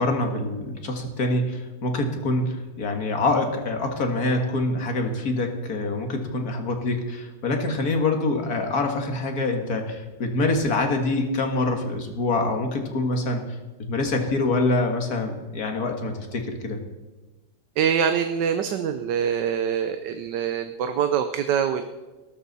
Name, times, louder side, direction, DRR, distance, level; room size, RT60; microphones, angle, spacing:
voice 1, 0.0-13.4 13.9-16.8, left 2 dB, 55° left, 4 dB, 2.2 m, -25 dB
voice 2, 17.8-21.8, right 8 dB, 75° right, 8 dB, 1.4 m, -24 dB
19.5 x 13.0 x 4.1 m, 1.2 s
omnidirectional pair, 1.9 m